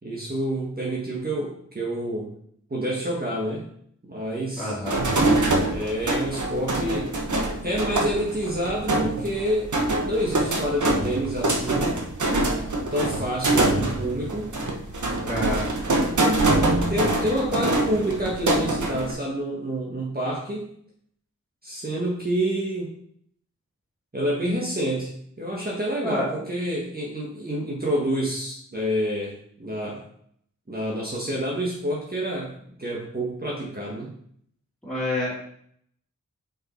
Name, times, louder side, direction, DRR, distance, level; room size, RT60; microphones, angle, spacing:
voice 1, 0.0-2.3 2.7-3.7 4.1-4.7 5.7-7.2 7.6-9.7 10.0-12.0 12.9-14.5 16.9-20.7 21.6-22.9 24.1-30.1 30.7-34.1, right 1 dB, 30° right, -3 dB, 1.6 m, -28 dB
voice 2, 4.6-5.0 15.2-15.6 26.0-26.3 34.8-35.3, left 1 dB, ahead, -10 dB, 2.9 m, -28 dB
sound 1, 4.9-19.1, right 2 dB, 70° right, 1.3 m, -24 dB
5.9 x 5.5 x 4.5 m, 0.66 s
wide cardioid pair, 60°, 31 cm